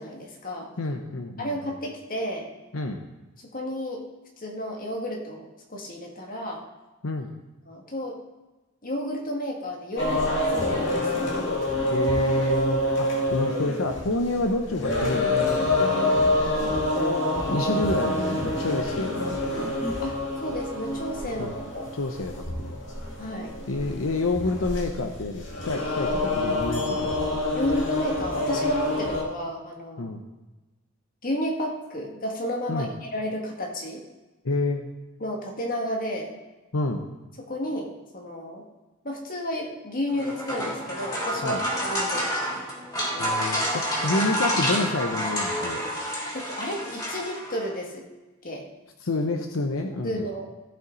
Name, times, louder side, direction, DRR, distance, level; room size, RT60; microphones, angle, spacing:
voice 1, 0.0-0.7 1.4-2.5 3.5-4.0 4.4-6.6 7.7-8.2 8.8-11.3 16.6-16.8 20.0-21.9 23.2-23.5 27.6-30.1 31.2-34.0 35.2-36.4 37.4-38.6 39.0-42.3 43.1-43.3 44.0-44.1 46.3-48.0 48.4-48.7 50.0-50.5, equal, 45° left, 0 dB, 1.9 m, -32 dB
voice 2, 0.8-1.7 2.7-3.0 7.0-7.3 11.9-16.2 17.5-19.7 21.4-21.6 21.9-22.8 23.7-27.2 30.0-30.2 32.7-32.9 34.4-34.9 36.7-37.0 41.4-41.6 43.2-45.8 49.0-50.3, left 2 dB, 85° left, 4 dB, 0.8 m, -28 dB
sound 1, 10.0-29.2, left 1 dB, 65° left, 2.3 m, -27 dB
sound 2, 40.1-47.7, equal, 20° left, 3.3 m, -29 dB
15.5 x 5.6 x 4.0 m, 1.1 s
head